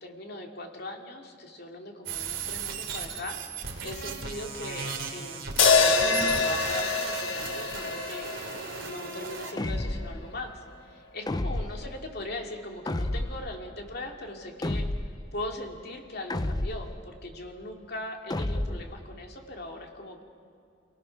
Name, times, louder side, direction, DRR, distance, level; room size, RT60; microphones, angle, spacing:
voice 1, 0.0-8.3 8.8-14.8 15.3-20.2, left 1 dB, 55° left, 1 dB, 2.5 m, -40 dB
sound 1, 2.1-9.5, right 5 dB, 75° right, 3.1 m, -36 dB
sound 2, 5.6-9.9, left 4 dB, 80° left, 1.7 m, -26 dB
sound 3, 9.6-10.2 11.3-11.9 12.9-13.5 14.6-15.3 16.3-17.0 18.3-18.9, left 1 dB, 20° left, 0.5 m, -30 dB
29.0 x 18.5 x 5.9 m, 2.5 s
head